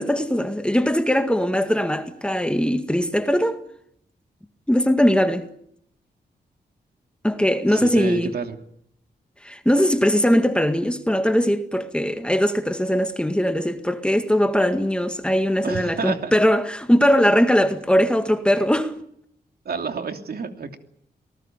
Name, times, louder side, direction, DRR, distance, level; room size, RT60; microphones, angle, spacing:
voice 1, 0.0-3.6 4.7-5.5 7.2-8.3 9.4-18.9, equal, 5° left, 1.9 m, -20 dB
voice 2, 7.7-8.6 15.6-16.3 19.6-20.8, right 5 dB, 60° right, 3.0 m, -29 dB
27.5 x 19.0 x 9.1 m
wide cardioid pair, 120°, 18 cm